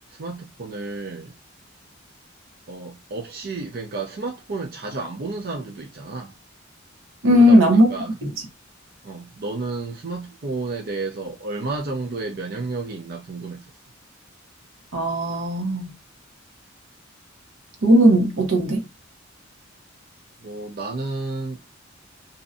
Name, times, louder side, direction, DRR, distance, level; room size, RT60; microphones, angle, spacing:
voice 1, 0.2-1.3 2.7-6.3 7.3-8.1 9.0-13.7 20.4-21.6, right 3 dB, 50° right, 0.5 m, -31 dB
voice 2, 7.2-7.9 8.2-8.3 14.9-15.9 17.8-18.8, equal, 75° right, 0.9 m, -16 dB
2.6 x 2.1 x 2.5 m
head